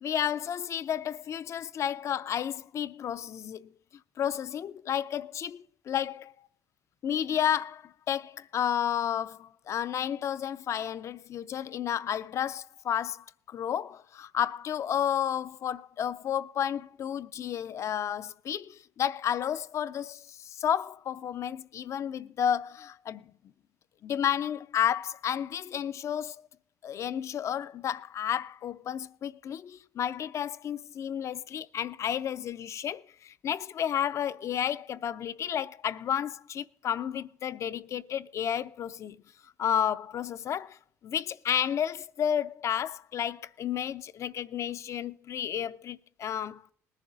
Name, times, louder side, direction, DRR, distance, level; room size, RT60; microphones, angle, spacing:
voice 1, 0.0-3.7 4.2-6.3 7.0-23.3 24.0-26.4 26.8-39.2 39.6-40.8 41.0-46.6, left 9 dB, 50° left, 0.5 m, -31 dB
19.5 x 10.5 x 4.0 m
supercardioid pair, 80°, 6 cm